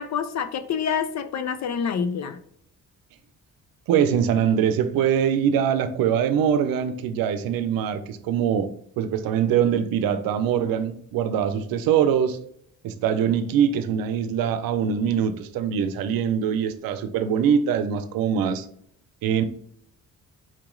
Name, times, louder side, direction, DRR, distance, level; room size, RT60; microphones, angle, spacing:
voice 1, 0.0-2.4, left 7 dB, 50° left, 0.7 m, -27 dB
voice 2, 3.9-8.7 9.0-12.4 12.8-18.7 19.2-19.4, right 8 dB, 80° right, 0.6 m, -23 dB
4.5 x 2.9 x 3.7 m
supercardioid pair, 70°, 34 cm